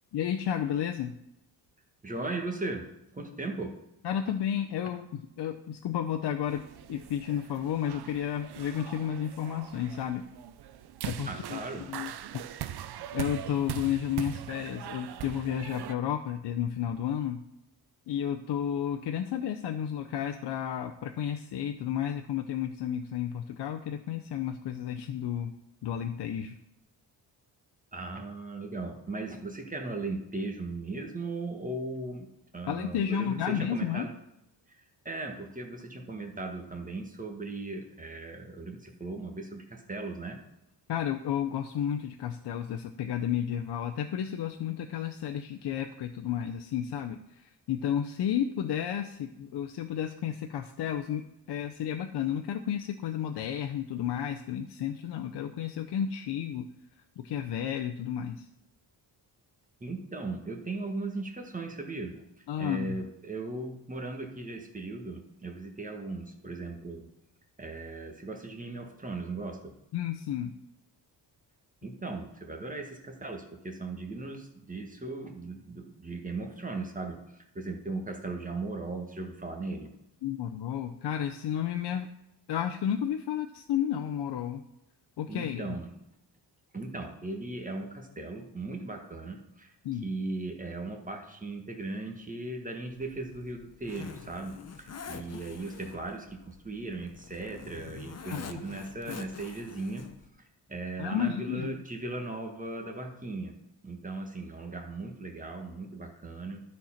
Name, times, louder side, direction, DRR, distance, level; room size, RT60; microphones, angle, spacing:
voice 1, 0.1-1.2 4.0-6.6 6.9-10.2 11.0-11.6 11.9-12.4 12.8-12.9 13.1-17.4 18.1-25.5 25.8-26.6 32.7-34.1 40.9-56.7 57.2-58.5 62.5-63.0 69.9-70.5 80.2-82.1 82.5-84.6 85.2-85.7 89.8-90.1 98.3-98.4 99.1-99.2 101.0-101.7, left 9 dB, 70° left, 4 dB, 0.7 m, -32 dB
voice 2, 2.0-2.8 3.1-3.7 11.2-11.9 27.9-32.3 32.5-34.1 34.8-40.4 59.8-62.2 62.6-67.1 67.6-69.7 71.8-79.9 85.3-85.9 86.7-89.7 90.0-100.0 100.4-103.5 103.8-106.6, right 2 dB, 20° right, 3 dB, 1.3 m, -38 dB
sound 1, 6.5-16.0, right 11 dB, 65° right, 0.6 m, -41 dB
Zipper (clothing), 92.9-100.3, left 6 dB, 35° left, 0.8 m, -46 dB
12.0 x 4.5 x 5.8 m, 0.83 s
wide cardioid pair, 140°, 42 cm